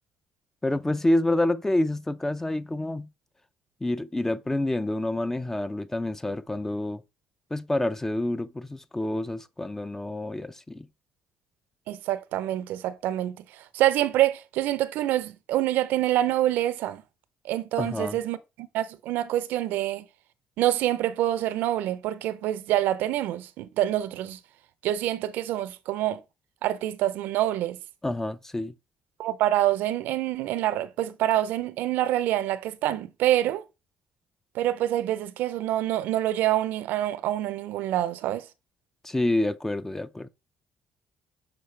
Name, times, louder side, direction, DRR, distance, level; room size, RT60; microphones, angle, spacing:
voice 1, 0.6-3.1 3.8-7.0 7.5-10.9 17.8-18.2 28.0-28.7 39.0-40.3, left 1 dB, 15° left, 0.5 m, -28 dB
voice 2, 11.9-13.4 13.7-17.0 17.4-18.4 18.7-20.0 20.6-24.4 24.8-26.2 26.6-27.8 29.2-33.6 34.6-38.4, right 13 dB, 80° right, 0.5 m, -26 dB
6.8 x 4.3 x 3.3 m
cardioid pair, 95°, 3 cm